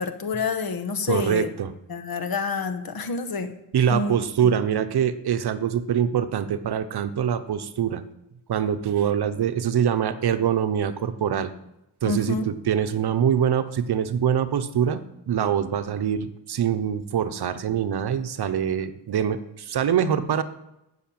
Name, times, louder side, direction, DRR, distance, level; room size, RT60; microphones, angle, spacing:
voice 1, 0.0-1.5 1.9-3.5 3.9-4.8 12.0-12.5, left 4 dB, 65° left, 8 dB, 1.5 m, -28 dB
voice 2, 1.1-1.7 3.7-8.0 8.5-11.5 12.0-20.4, right 8 dB, 75° right, 11 dB, 1.0 m, -24 dB
13.5 x 6.6 x 8.7 m, 0.89 s
wide cardioid pair, 120°, 39 cm